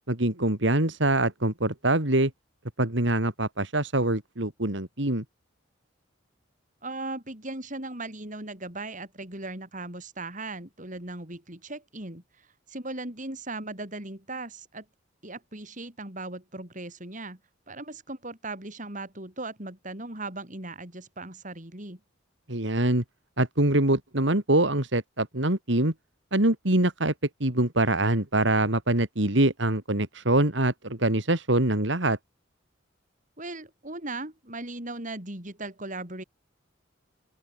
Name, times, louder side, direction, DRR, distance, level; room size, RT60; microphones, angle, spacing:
voice 1, 0.1-2.3 2.8-5.2 22.5-23.0 23.4-25.9 26.3-27.1 27.4-32.2, right 1 dB, 65° right, 3.1 m, -24 dB
voice 2, 6.8-12.2 12.7-14.9 15.2-17.4 17.7-22.0 33.4-36.2, right 2 dB, 40° right, 5.6 m, -38 dB
open air
head